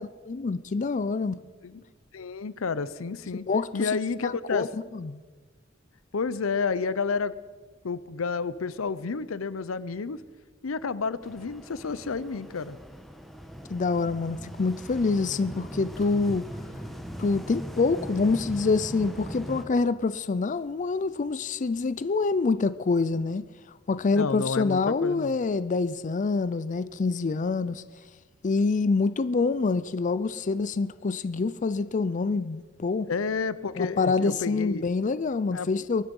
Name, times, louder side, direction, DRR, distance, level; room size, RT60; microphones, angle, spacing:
voice 1, 0.0-1.4 3.5-3.9 4.2-5.2 13.7-16.4 17.2-23.4 23.9-27.8 28.4-33.1 33.8-36.0, left 4 dB, 40° left, 0.4 m, -26 dB
voice 2, 2.1-3.5 3.7-4.7 6.1-7.4 7.8-10.2 10.6-12.8 24.1-25.4 33.1-34.8 35.5-35.7, left 5 dB, 85° left, 0.6 m, -30 dB
sound 1, 11.2-19.7, equal, ahead, 1.4 m, -40 dB
22.5 x 9.8 x 5.4 m
head